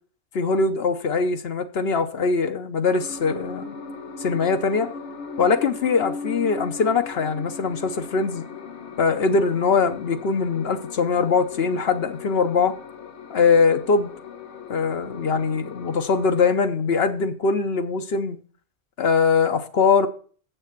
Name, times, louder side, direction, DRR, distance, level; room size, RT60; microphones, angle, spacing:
voice 1, 0.3-3.7 4.2-4.9 5.4-8.5 9.0-12.8 13.3-14.1 14.7-18.4 19.0-20.1, left 5 dB, 65° left, 1.0 m, -22 dB
sound 1, 2.9-16.5, left 5 dB, 90° left, 1.3 m, -38 dB
7.5 x 6.6 x 5.9 m
omnidirectional pair, 1.2 m